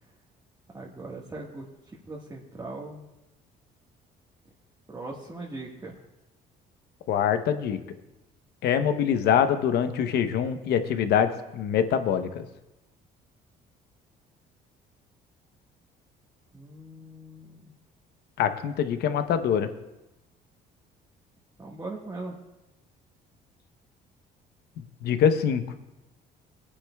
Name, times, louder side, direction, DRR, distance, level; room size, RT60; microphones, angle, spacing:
voice 1, 0.7-3.1 4.9-5.9 16.5-17.7 21.6-22.3, right 2 dB, 20° right, -3 dB, 1.5 m, -40 dB
voice 2, 7.1-7.8 8.6-12.4 18.4-19.7 25.0-25.6, left 8 dB, 70° left, 9 dB, 0.9 m, -24 dB
23.0 x 9.8 x 2.3 m, 0.97 s
cardioid pair, 110°, 17 cm